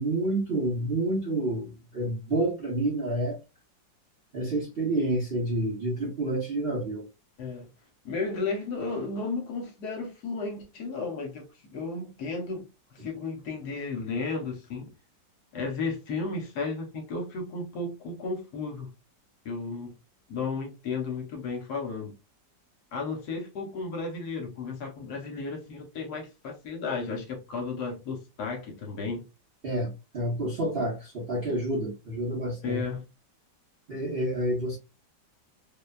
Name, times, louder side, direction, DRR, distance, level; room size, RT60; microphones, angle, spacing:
voice 1, 0.0-3.4 4.3-7.1 13.0-13.1 29.6-32.8 33.9-34.8, right 1 dB, 50° right, 0.7 m, -29 dB
voice 2, 8.0-12.7 13.0-14.9 15.5-18.9 19.4-19.9 20.3-22.1 22.9-29.2 32.6-33.0, left 4 dB, 65° left, 1.2 m, -33 dB
3.0 x 2.2 x 2.3 m
omnidirectional pair, 2.0 m